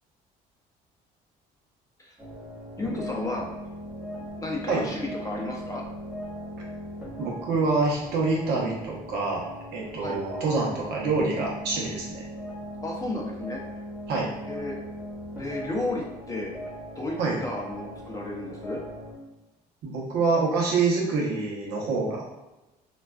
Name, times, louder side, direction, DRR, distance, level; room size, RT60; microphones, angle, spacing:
sound 1, 2.2-19.1, equal, 5° right, 0.9 m, -39 dB
voice 1, 2.8-3.5 4.4-5.8 10.0-10.2 12.8-13.6 14.5-14.7 15.3-16.5 17.0-17.2 17.4-18.8, left 2 dB, 20° left, -2 dB, 0.5 m, -32 dB
voice 2, 7.2-9.4 9.7-12.2 14.1-14.3 17.2-17.4 19.8-22.3, right 3 dB, 75° right, -3 dB, 0.8 m, -26 dB
2.4 x 2.2 x 2.3 m, 1.0 s
cardioid pair, 110°, 17 cm